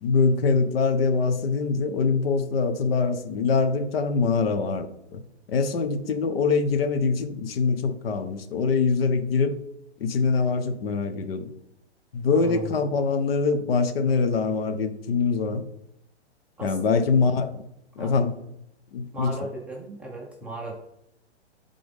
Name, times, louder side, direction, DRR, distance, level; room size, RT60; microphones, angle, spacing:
voice 1, 0.0-5.2 5.5-9.6 10.0-11.5 12.1-15.6 16.6-17.6 18.0-18.4 18.9-19.3, left 4 dB, 60° left, 9 dB, 0.9 m, -24 dB
voice 2, 12.3-12.7 16.6-17.0 18.0-18.2 19.1-20.7, right 2 dB, 5° right, -4 dB, 0.5 m, -37 dB
10.5 x 3.9 x 3.4 m, 0.81 s
hypercardioid pair, 145°, 34 cm